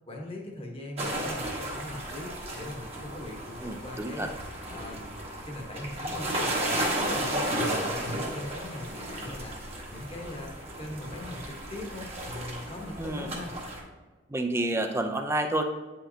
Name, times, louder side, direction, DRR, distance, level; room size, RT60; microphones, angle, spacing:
voice 1, 0.1-5.1 5.4-10.5 10.8-13.5, left 1 dB, 30° left, 0 dB, 1.2 m, -41 dB
sound 1, 1.0-13.8, right 1 dB, 35° right, 1.3 m, -34 dB
voice 2, 3.6-4.3 13.0-13.3 14.3-15.6, right 1 dB, 15° right, 5 dB, 0.6 m, -29 dB
8.6 x 5.7 x 2.8 m, 1.3 s
head